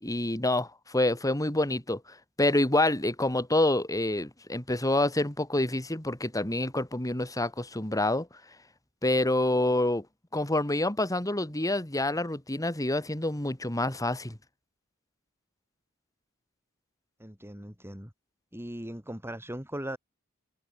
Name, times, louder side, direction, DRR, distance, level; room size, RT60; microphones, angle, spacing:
voice 1, 0.0-8.3 9.0-10.1 10.3-14.4, left 1 dB, 15° left, 2.4 m, -27 dB
voice 2, 17.2-18.1 18.5-20.0, right 1 dB, 10° right, 4.4 m, -39 dB
open air
head